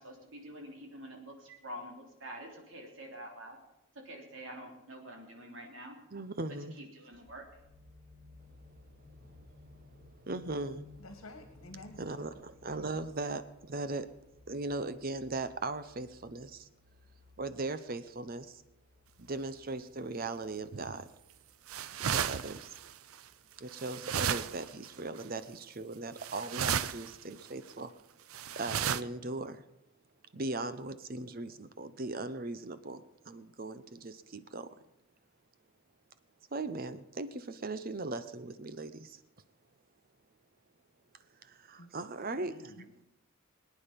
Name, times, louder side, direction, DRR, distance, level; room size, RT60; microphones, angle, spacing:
voice 1, 0.0-3.6 4.0-6.0 6.8-7.5, right 1 dB, 65° right, 1 dB, 3.3 m, -47 dB
voice 2, 6.1-6.8 9.3-9.4 10.0-10.8 12.0-14.1 14.5-16.7 17.4-18.6 19.2-21.1 22.1-22.7 23.6-27.9 28.6-29.6 30.3-33.0 33.3-34.7 36.5-39.2 41.4-42.5, right 2 dB, 45° right, 12 dB, 0.8 m, -38 dB
sound 1, 7.1-25.0 25.4-25.5, left 2 dB, ahead, 5.3 m, -59 dB
voice 3, 11.0-12.0 41.7-42.0 42.3-43.0, left 2 dB, 75° left, 6 dB, 1.7 m, -50 dB
sound 2, 20.7-21.0 21.7-23.1 23.7-24.9 25.2-25.3 26.2-27.1 27.4-27.5 28.3-29.0, right 8 dB, 85° right, 0.6 m, -34 dB
22.5 x 9.4 x 5.2 m, 0.88 s
head